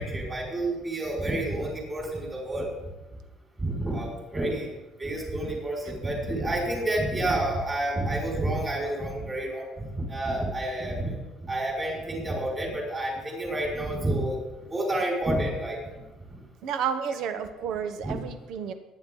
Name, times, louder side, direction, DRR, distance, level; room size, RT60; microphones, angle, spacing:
voice 1, 0.0-2.7 3.6-4.7 5.0-11.1 11.4-14.4 14.7-15.8 18.0-18.1, right 1 dB, 20° right, -3 dB, 5.2 m, -29 dB
voice 2, 16.6-18.7, right 7 dB, 65° right, 9 dB, 1.0 m, -31 dB
23.0 x 9.9 x 3.9 m, 1.1 s
cardioid pair, 150°, 0 cm